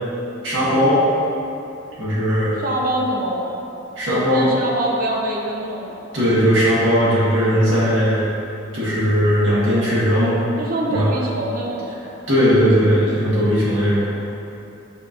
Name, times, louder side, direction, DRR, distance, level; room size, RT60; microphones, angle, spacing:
voice 1, 0.4-1.0 2.0-2.6 4.0-4.5 6.1-8.3 8.7-10.4 10.9-11.1 12.3-14.1, equal, 70° right, -10 dB, 1.3 m, -18 dB
voice 2, 2.6-3.6 4.1-6.0 7.3-7.6 10.6-12.2, right 1 dB, 45° right, -1 dB, 0.5 m, -25 dB
5.7 x 2.8 x 2.4 m, 2.8 s
head